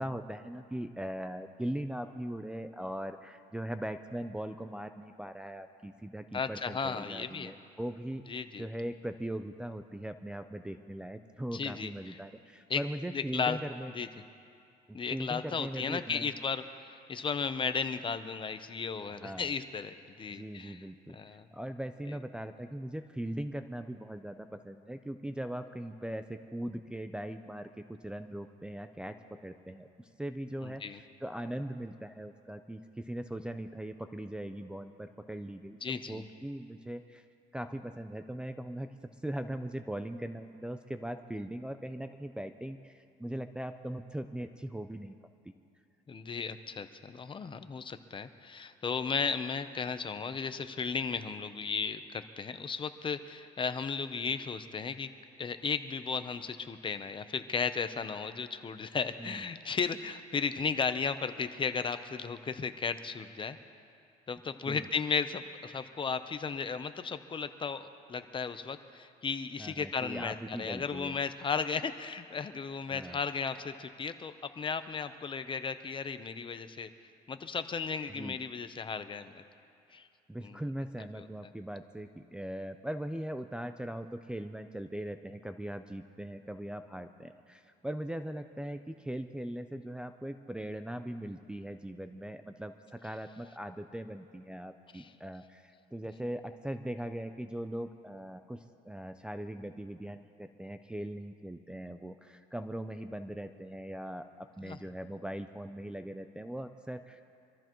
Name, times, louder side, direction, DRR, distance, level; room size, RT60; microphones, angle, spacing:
voice 1, 0.0-8.2 8.6-13.9 14.9-16.3 19.2-19.5 20.3-29.9 30.2-37.2 37.5-38.9 39.2-45.2 59.2-59.5 64.7-64.8 69.6-71.2 72.9-73.2 78.1-78.4 80.3-107.2, right 1 dB, 5° right, 6 dB, 0.5 m, -40 dB
voice 2, 6.3-7.5 8.3-8.7 11.5-12.2 12.7-12.8 13.1-13.6 13.9-14.1 14.9-16.6 17.1-20.8 21.1-21.5 30.6-31.0 35.8-36.2 46.1-55.1 55.4-63.6 64.3-76.9 77.3-79.4 79.9-80.1 80.4-80.6 81.1-81.3 94.9-95.1 104.6-104.8, left 5 dB, 30° left, 10 dB, 0.7 m, -35 dB
25.0 x 14.0 x 3.1 m, 2.4 s
cardioid pair, 110°, 17 cm